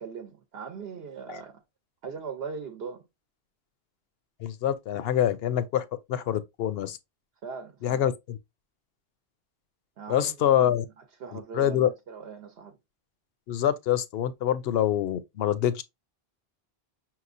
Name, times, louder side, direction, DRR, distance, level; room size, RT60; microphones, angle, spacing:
voice 1, 0.0-1.6 2.0-3.0 7.4-8.1 10.0-10.7 11.2-12.8, right 5 dB, 70° right, 1.0 m, -40 dB
voice 2, 4.4-7.0 7.8-8.4 10.1-10.9 11.3-11.9 13.5-15.8, left 10 dB, 70° left, 0.8 m, -26 dB
5.9 x 3.0 x 2.5 m
omnidirectional pair, 1.1 m